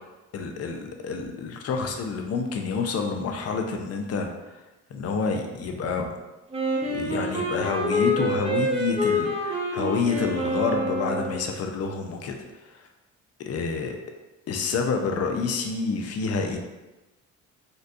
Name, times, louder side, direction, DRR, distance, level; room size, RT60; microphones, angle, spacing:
voice 1, 0.3-4.3 4.5-4.6 4.9-6.1 6.8-12.4 12.7-12.8 13.5-14.0 14.5-16.6, left 4 dB, 55° left, 3 dB, 0.5 m, -28 dB
Wind instrument woodwind instrument, 6.5-11.6, equal, 20° right, 0.8 m, -27 dB
4.0 x 2.2 x 2.5 m, 1.1 s
cardioid pair, 90°, 30 cm